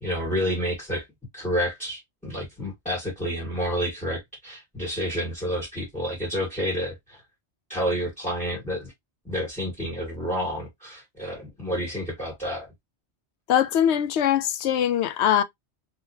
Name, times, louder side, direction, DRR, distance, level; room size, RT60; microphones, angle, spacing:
voice 1, 0.0-1.1 1.3-7.2 7.7-8.9 9.2-12.7, equal, 5° left, 1.4 m, -29 dB
voice 2, 13.5-15.4, left 10 dB, 80° left, 0.9 m, -22 dB
3.8 x 3.1 x 2.7 m
omnidirectional pair, 1.1 m